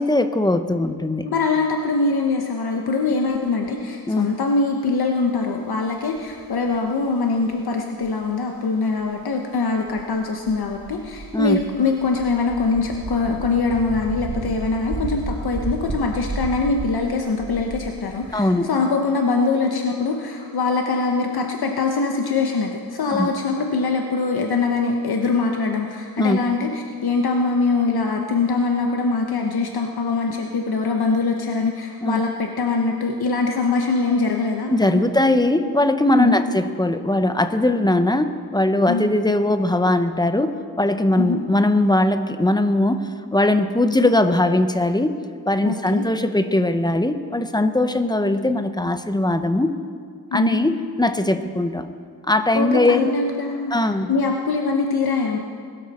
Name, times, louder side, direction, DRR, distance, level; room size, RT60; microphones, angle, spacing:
voice 1, 0.0-1.3 4.1-4.3 11.3-11.6 18.3-18.7 23.1-23.3 26.2-26.4 32.0-32.2 34.7-45.2 45.5-49.7 50.3-51.9 52.2-53.1 53.7-54.1, left 1 dB, 10° left, 9 dB, 0.7 m, -20 dB
voice 2, 1.2-35.0 36.1-36.4 38.9-39.1 41.2-41.4 45.6-46.0 50.3-50.6 52.5-53.7 54.1-55.4, left 4 dB, 70° left, 2 dB, 1.1 m, -23 dB
sound 1, 6.2-6.9 8.0-8.2 9.0-9.2 9.9-18.4, right 3 dB, 50° right, 1.5 m, -33 dB
20.5 x 13.0 x 4.2 m, 2.1 s
wide cardioid pair, 110°, 39 cm